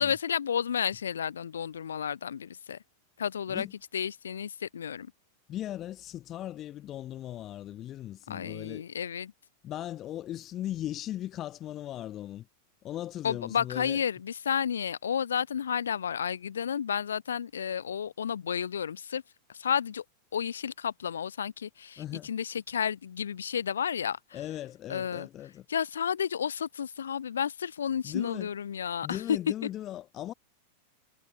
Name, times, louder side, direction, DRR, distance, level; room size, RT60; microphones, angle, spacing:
voice 1, 0.0-2.8 3.2-3.7 3.9-5.1 8.3-9.3 13.2-19.2 19.5-20.0 20.3-24.4 24.9-25.3 25.7-29.4, left 8 dB, 65° left, 2.1 m, -31 dB
voice 2, 5.5-8.8 9.6-12.5 12.8-14.0 22.0-22.3 24.3-25.6 28.0-28.5 29.0-30.3, left 12 dB, 30° left, 1.5 m, -38 dB
figure-of-eight pair, 90°, 0 cm